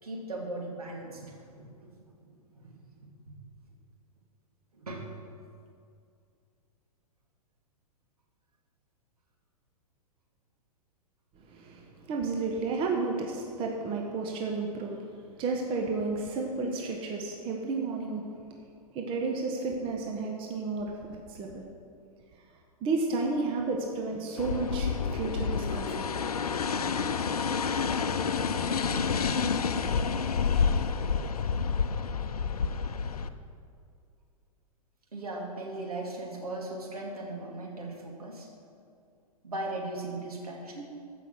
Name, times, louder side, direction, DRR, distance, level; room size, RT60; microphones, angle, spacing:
voice 1, 0.0-1.6 2.5-2.7 3.3-3.4 4.7-5.1 35.1-38.5 39.4-40.9, right 2 dB, 70° right, -1 dB, 2.5 m, -38 dB
voice 2, 11.3-15.1 15.4-18.6 18.9-21.7 22.3-22.4 22.8-26.1, right 3 dB, 25° right, 1 dB, 1.2 m, -32 dB
sound 1, 24.4-33.3, left 5 dB, 70° left, 0.6 m, -29 dB
14.5 x 6.0 x 6.2 m, 2.4 s
figure-of-eight pair, 105°, 20 cm